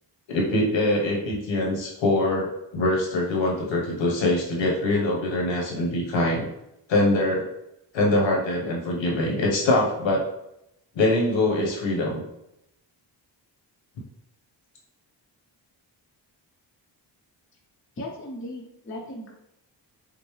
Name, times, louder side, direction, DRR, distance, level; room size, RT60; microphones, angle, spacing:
voice 1, 0.3-6.4 6.9-7.5 7.9-10.2 10.9-12.2, left 1 dB, 80° left, -1 dB, 1.2 m, -23 dB
voice 2, 18.0-19.3, left 1 dB, 30° left, -2 dB, 0.7 m, -37 dB
5.2 x 2.1 x 3.2 m, 0.83 s
wide cardioid pair, 110°, 44 cm